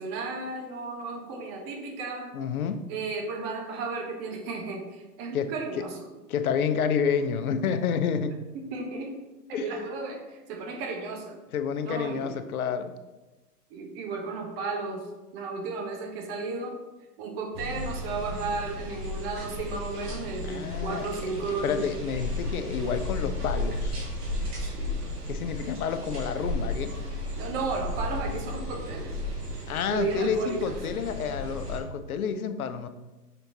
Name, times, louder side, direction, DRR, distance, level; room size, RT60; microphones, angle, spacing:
voice 1, 0.0-2.3 2.9-6.1 8.5-9.2 9.5-11.4 11.8-12.4 13.7-15.1 15.3-16.8 17.2-21.9 24.7-24.9 27.4-29.2 29.9-30.6, right 4 dB, 40° right, 2 dB, 1.3 m, -34 dB
voice 2, 2.3-2.8 5.3-5.8 6.3-8.4 9.5-9.7 11.5-12.9 20.4-21.1 21.6-24.0 25.3-27.0 29.7-32.9, left 7 dB, 65° left, 9 dB, 0.8 m, -29 dB
sound 1, 17.5-31.8, left 1 dB, 70° right, 2.1 m, -34 dB
5.5 x 4.5 x 4.0 m, 1.1 s
hypercardioid pair, 120°, 47 cm